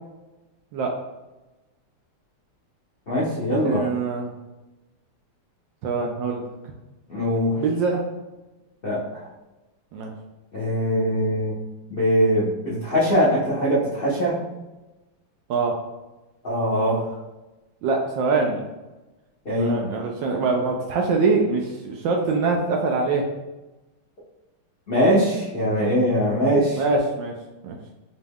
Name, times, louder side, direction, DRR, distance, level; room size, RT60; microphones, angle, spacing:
voice 1, 3.1-3.9 7.1-7.6 8.8-9.3 10.5-11.5 11.9-14.4 16.4-17.1 19.4-19.8 24.9-26.8, equal, 85° left, -8 dB, 0.5 m, -22 dB
voice 2, 3.6-4.3 5.8-6.4 7.6-8.0 9.9-10.1 15.5-15.7 17.8-18.6 19.6-23.2 26.8-27.3 27.6-27.8, right 4 dB, 75° right, 1 dB, 1.1 m, -23 dB
5.1 x 2.2 x 3.5 m, 1.1 s
omnidirectional pair, 2.4 m